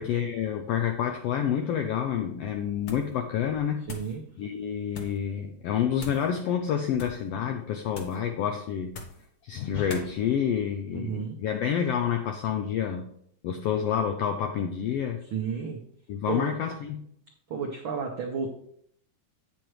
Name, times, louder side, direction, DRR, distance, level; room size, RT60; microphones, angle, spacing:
voice 1, 0.0-3.8 4.4-8.9 9.4-13.1 13.4-15.2 16.1-17.1, left 8 dB, 90° left, 5 dB, 1.4 m, -28 dB
sound 1, 2.8-3.2 3.5-4.2 4.9-5.2 6.0-6.3 6.9-7.3 7.9-8.3 8.9-9.3 9.9-10.1, left 2 dB, 70° left, 0.9 m, -42 dB
voice 2, 3.9-4.2 10.9-11.4 15.2-15.8 16.3-16.5 17.5-18.5, right 6 dB, 85° right, 2 dB, 1.1 m, -32 dB
8.8 x 7.6 x 3.2 m, 0.68 s
omnidirectional pair, 3.5 m